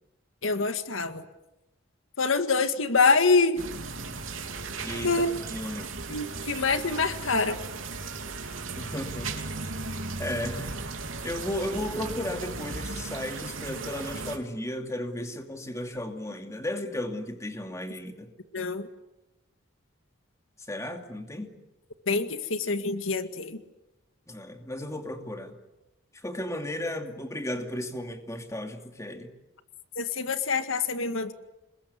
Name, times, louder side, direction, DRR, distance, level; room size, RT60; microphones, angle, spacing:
voice 1, 0.4-1.2 2.2-3.6 5.0-5.3 6.1-7.6 18.5-18.9 22.1-23.6 30.0-31.3, left 4 dB, 90° left, 8 dB, 2.0 m, -25 dB
sound 1, 3.6-14.4, right 3 dB, 90° right, 3.3 m, -36 dB
voice 2, 4.8-5.1 5.4-5.9 8.8-9.3 10.2-10.8 11.2-18.3 20.7-21.5 24.3-25.6 26.1-29.3, left 1 dB, 15° left, 5 dB, 2.6 m, -34 dB
28.0 x 21.5 x 9.6 m, 0.96 s
head